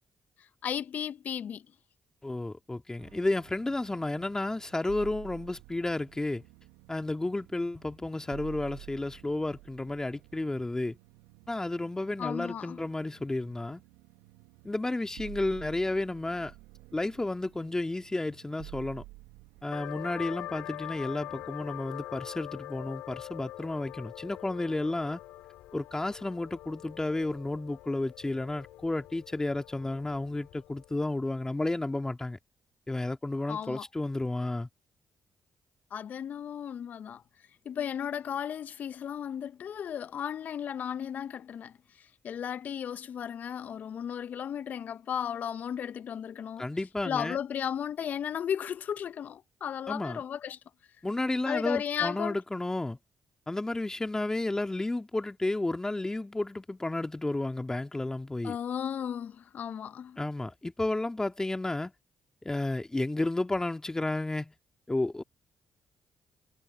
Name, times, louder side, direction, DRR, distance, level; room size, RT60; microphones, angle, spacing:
voice 1, 0.6-1.6 12.2-12.8 33.5-33.8 35.9-37.2 37.6-41.7 42.2-46.6 47.0-50.6 51.5-52.4 58.4-60.2, left 8 dB, 60° left, 1.2 m, -35 dB
voice 2, 2.2-6.4 6.9-11.0 11.5-13.8 14.6-16.5 16.9-19.0 19.6-25.2 25.7-32.4 32.9-34.7 46.6-47.4 49.9-50.2 51.0-53.0 53.5-58.6 60.2-61.9 62.4-64.5 64.9-65.2, left 2 dB, 20° left, 2.3 m, -32 dB
sound 1, 3.0-21.5, right 20 dB, 80° right, 1.7 m, -52 dB
sound 2, 19.7-31.0, left 15 dB, 75° left, 2.7 m, -44 dB
hypercardioid pair, 45°, 3 cm